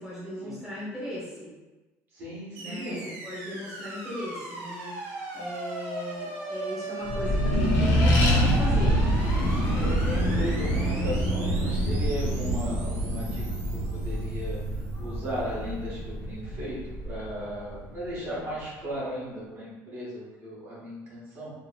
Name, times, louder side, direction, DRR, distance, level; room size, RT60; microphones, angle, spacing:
voice 1, 0.0-1.5 2.6-5.0 5.3-9.0 9.7-10.4, left 1 dB, 10° right, -9 dB, 1.1 m, -37 dB
voice 2, 2.1-3.1 9.5-16.8 17.0-21.5, equal, 40° right, -6 dB, 1.1 m, -36 dB
sound 1, 2.5-14.8, right 1 dB, 85° right, 0.8 m, -39 dB
Accelerating revving vroom, 7.0-18.0, equal, 70° left, 0.7 m, -26 dB
2.7 x 2.7 x 2.4 m, 1.2 s
cardioid pair, 170°, 6 cm